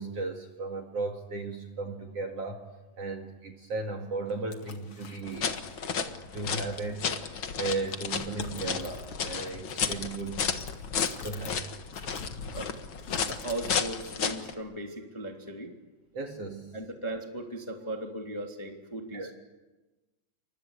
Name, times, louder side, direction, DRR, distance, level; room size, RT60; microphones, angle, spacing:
voice 1, 0.0-2.7 3.0-10.5 11.0-11.6 16.1-16.8 19.1-19.3, right 3 dB, 45° right, 3 dB, 2.6 m, -36 dB
Cigarette box handling-shaking-dropping, 4.3-5.8 6.4-9.2 9.5-11.6 11.8-13.5, left 5 dB, 45° left, 2.3 m, -46 dB
sound 1, 5.2-14.5, left 6 dB, 60° left, 1.3 m, -33 dB
voice 2, 13.3-15.7 16.7-19.3, right 1 dB, 10° left, 2 dB, 2.2 m, -37 dB
29.0 x 25.0 x 8.3 m, 1.1 s
omnidirectional pair, 4.6 m